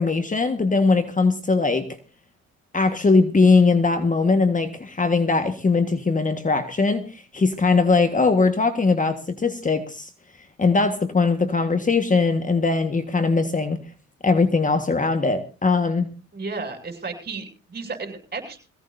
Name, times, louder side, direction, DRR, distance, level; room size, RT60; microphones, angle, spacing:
voice 1, 0.0-1.9 2.7-10.1 10.6-13.8 14.2-16.1, left 4 dB, 25° left, 8 dB, 1.6 m, -20 dB
voice 2, 16.3-18.7, right 4 dB, 35° right, 4 dB, 6.8 m, -33 dB
22.0 x 16.5 x 2.7 m, 0.34 s
cardioid pair, 90°, 30 cm